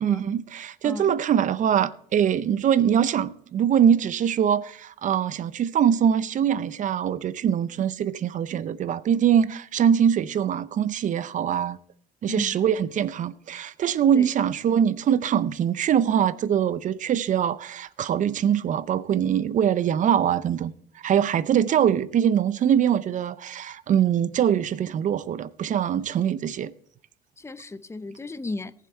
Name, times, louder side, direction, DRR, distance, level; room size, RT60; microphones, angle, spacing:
voice 1, 0.0-11.8 12.2-20.7 21.0-26.7, right 9 dB, 50° right, 0.6 m, -23 dB
voice 2, 0.8-1.2 12.3-12.6 14.1-14.3 27.4-28.7, left 2 dB, 15° left, 0.6 m, -35 dB
18.5 x 7.5 x 4.4 m
cardioid pair, 110°, 17 cm